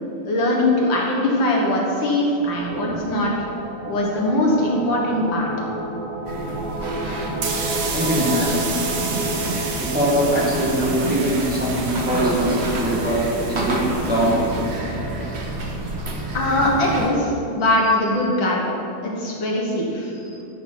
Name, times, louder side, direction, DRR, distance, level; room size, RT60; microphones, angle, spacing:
voice 1, 0.3-3.3 3.9-5.5 16.3-18.6 19.0-20.1, left 1 dB, 65° left, -2 dB, 2.2 m, -21 dB
sound 1, 2.4-15.5, right 1 dB, 55° right, 1.4 m, -31 dB
sound 2, 6.2-17.1, right 2 dB, 40° right, 1.2 m, -29 dB
sound 3, 7.4-14.8, right 4 dB, 80° right, 2.1 m, -31 dB
voice 2, 7.9-8.7 9.8-13.2 13.5-14.5, right 1 dB, 5° right, -5 dB, 1.7 m, -22 dB
12.5 x 6.6 x 5.8 m, 2.7 s
omnidirectional pair, 2.3 m